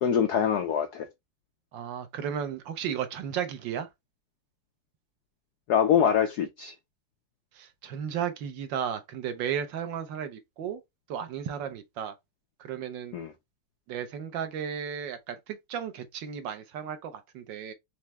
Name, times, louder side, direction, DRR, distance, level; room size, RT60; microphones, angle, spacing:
voice 1, 0.0-1.1 5.7-6.7 13.1-13.3, left 8 dB, 90° left, 0.8 m, -24 dB
voice 2, 1.7-3.9 7.5-10.8 11.1-12.1 12.6-13.2 13.9-17.7, right 8 dB, 70° right, 1.3 m, -34 dB
4.6 x 3.2 x 2.9 m
omnidirectional pair, 2.3 m